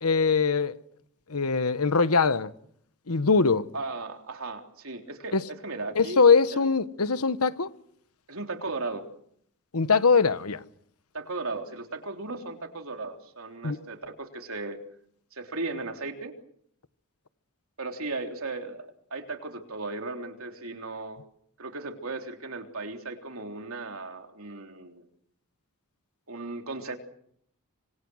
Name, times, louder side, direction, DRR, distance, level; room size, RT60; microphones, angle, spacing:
voice 1, 0.0-0.8 1.3-2.5 3.1-3.6 5.3-5.4 5.9-7.7 9.7-10.6 13.6-13.8, left 4 dB, 80° left, 1.2 m, -22 dB
voice 2, 3.7-6.2 6.5-6.6 8.3-9.1 11.1-14.8 15.3-16.3 17.8-21.2 21.6-25.0 26.3-27.0, right 3 dB, 65° right, 3.5 m, -36 dB
26.5 x 25.5 x 6.4 m
head